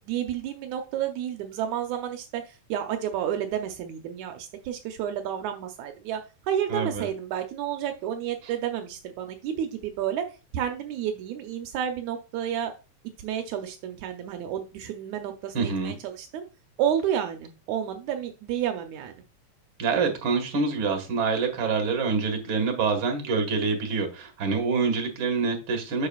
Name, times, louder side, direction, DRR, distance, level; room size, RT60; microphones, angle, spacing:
voice 1, 0.1-10.3 10.5-12.7 13.2-16.4 16.8-19.2, right 10 dB, 80° right, 6 dB, 2.1 m, -30 dB
voice 2, 6.7-7.1 15.5-16.0 19.8-26.1, right 4 dB, 50° right, 4 dB, 2.3 m, -26 dB
8.0 x 6.6 x 2.4 m, 0.31 s
omnidirectional pair, 3.3 m